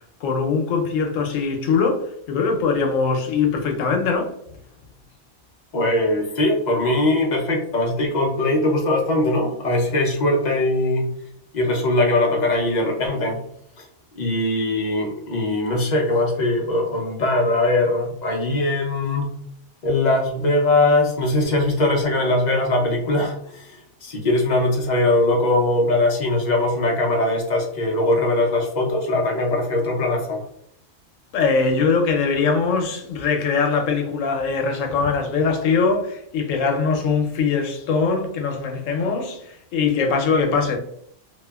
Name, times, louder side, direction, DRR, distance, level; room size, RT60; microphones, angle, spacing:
voice 1, 0.2-4.3 31.3-40.8, left 5 dB, 90° left, 1.0 m, -22 dB
voice 2, 5.7-11.1 11.5-13.4 13.8-13.9 14.2-19.3 19.8-30.4, left 2 dB, 50° left, 0.5 m, -21 dB
2.8 x 2.4 x 2.2 m
omnidirectional pair, 1.3 m